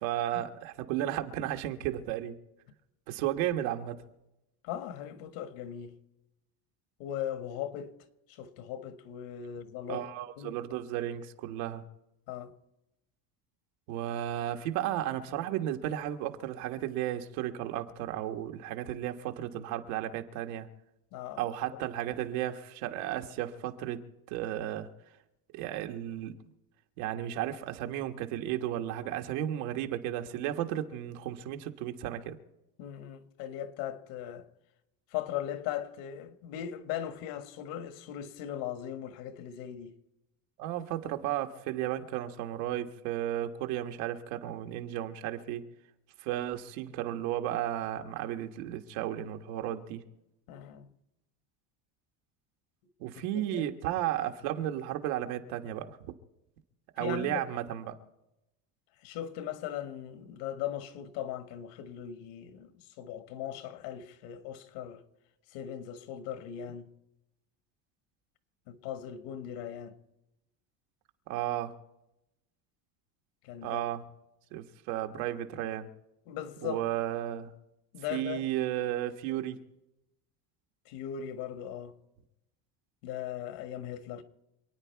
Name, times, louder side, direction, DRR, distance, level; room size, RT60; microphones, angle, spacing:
voice 1, 0.0-2.4 3.1-4.0 9.9-11.8 13.9-20.7 21.4-24.9 25.5-26.4 27.0-32.4 40.6-45.6 46.2-50.0 53.0-56.1 57.0-58.0 71.3-71.7 73.6-74.0 74.5-75.9 76.6-77.5 78.1-79.6, right 12 dB, 85° right, 1.6 m, -34 dB
voice 2, 4.6-5.9 7.0-7.9 8.3-10.1 10.4-10.6 12.3-12.5 21.1-21.4 21.7-21.8 32.8-34.5 35.1-39.9 50.5-50.9 53.1-53.7 57.0-57.5 59.0-65.0 65.5-66.9 68.7-69.9 73.4-73.8 76.3-76.8 77.9-78.5 80.9-81.9 83.0-84.2, left 10 dB, 75° left, 1.7 m, -39 dB
27.5 x 9.5 x 4.6 m
cardioid pair, 155°, 43 cm